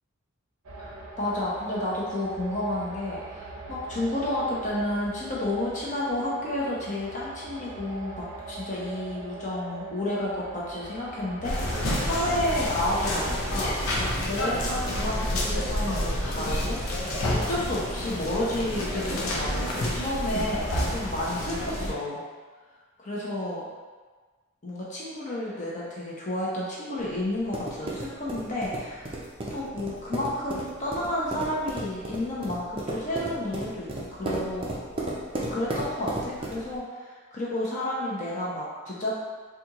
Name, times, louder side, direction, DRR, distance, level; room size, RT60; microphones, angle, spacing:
sound 1, 0.6-13.4, right 2 dB, 80° right, 0.6 m, -42 dB
voice 1, 1.2-13.7 14.2-16.8 17.3-22.2 23.0-23.7 24.6-29.1 29.5-34.7 35.4-39.1, left 1 dB, 35° left, -6 dB, 0.7 m, -31 dB
sound 2, 11.4-21.9, left 1 dB, 80° left, 0.7 m, -29 dB
sound 3, 27.0-36.8, right 1 dB, 25° right, 0.4 m, -35 dB
4.1 x 2.4 x 2.9 m, 1.4 s
head